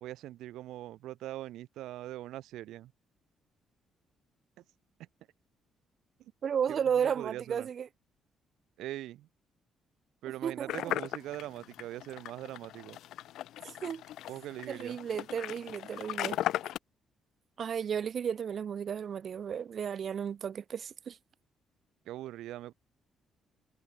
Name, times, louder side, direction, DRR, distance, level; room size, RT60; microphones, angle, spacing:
voice 1, 0.0-2.9 6.2-6.3 6.7-7.7 8.8-9.3 10.2-13.0 14.3-15.0 22.0-22.7, right 14 dB, 85° right, 2.4 m, -42 dB
voice 2, 6.4-7.9 10.4-10.7 13.6-14.0 14.7-16.4 17.6-21.2, right 8 dB, 55° right, 0.7 m, -33 dB
sound 1, 10.7-16.8, left 13 dB, 80° left, 2.4 m, -37 dB
cardioid pair, 90°, 0 cm